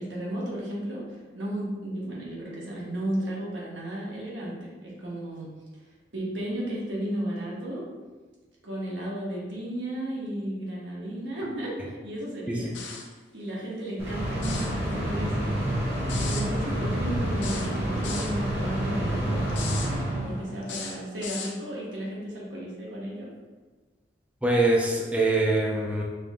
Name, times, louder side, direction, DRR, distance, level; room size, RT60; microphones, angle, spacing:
voice 1, 0.0-5.5 6.1-7.8 8.6-12.7 13.0-15.5 16.1-19.5 20.1-23.3, right 1 dB, 90° right, -5 dB, 1.2 m, -34 dB
sound 1, 12.7-13.1 14.3-14.7 16.1-16.5 17.4-18.3 19.5-19.9 20.6-21.6, left 5 dB, 80° left, 0.6 m, -37 dB
sound 2, 14.0-20.8, right 1 dB, 35° right, 0.9 m, -28 dB
voice 2, 24.4-26.0, right 2 dB, 5° right, -2 dB, 0.4 m, -24 dB
5.2 x 2.8 x 2.3 m, 1.3 s
head